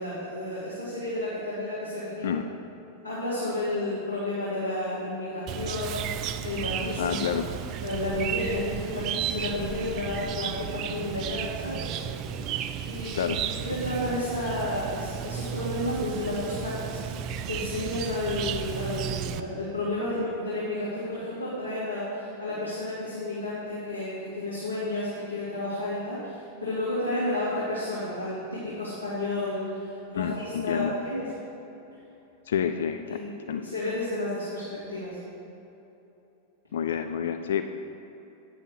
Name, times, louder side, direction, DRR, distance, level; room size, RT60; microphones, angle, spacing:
voice 1, 0.0-2.3 3.0-6.0 6.4-7.2 7.8-11.9 12.9-17.0 17.5-31.3 33.1-35.2, left 1 dB, 80° left, -10 dB, 2.1 m, -31 dB
Chirp tweet, 5.5-19.4, right 9 dB, 40° right, 0.4 m, -34 dB
voice 2, 7.0-7.5 13.1-13.4 30.2-31.0 32.5-33.2 33.5-33.6 36.7-37.6, left 8 dB, 60° left, 8 dB, 0.3 m, -28 dB
9.1 x 6.2 x 4.9 m, 2.9 s
figure-of-eight pair, 90°, 0 cm